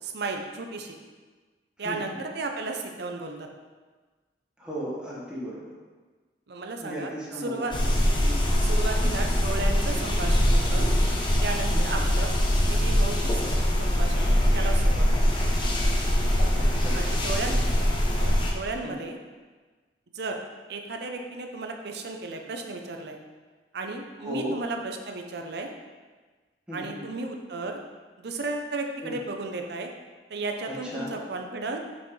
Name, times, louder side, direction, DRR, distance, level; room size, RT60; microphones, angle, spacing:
voice 1, 0.0-0.9 1.8-3.5 6.5-7.7 8.6-10.9 11.4-12.3 12.7-13.4 13.8-15.2 16.9-17.9 18.2-19.2 20.1-20.4 20.7-23.2 23.7-25.7 26.7-27.8 28.2-29.9 30.3-31.8, right 3 dB, 65° right, 4 dB, 0.7 m, -34 dB
voice 2, 4.6-5.7 6.8-7.8 8.2-8.4 11.7-12.0 16.5-17.0 18.8-19.0 24.2-24.6 26.7-27.0 29.0-29.1 30.7-31.1, equal, 5° right, -8 dB, 1.6 m, -36 dB
sound 1, 7.7-18.5, equal, 30° left, 0.8 m, -23 dB
6.1 x 5.8 x 3.2 m, 1.4 s
head